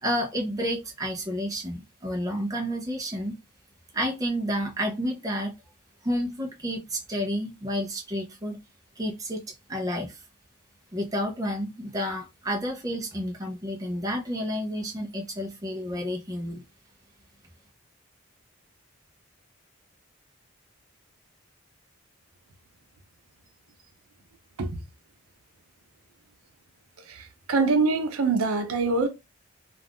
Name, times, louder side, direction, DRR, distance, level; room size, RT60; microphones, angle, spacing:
voice 1, 0.0-3.3 3.9-5.5 6.0-8.6 9.0-10.2 10.9-16.6, equal, 15° right, 0.6 m, -30 dB
voice 2, 27.1-29.1, right 4 dB, 85° right, 0.6 m, -24 dB
2.4 x 2.3 x 3.5 m
head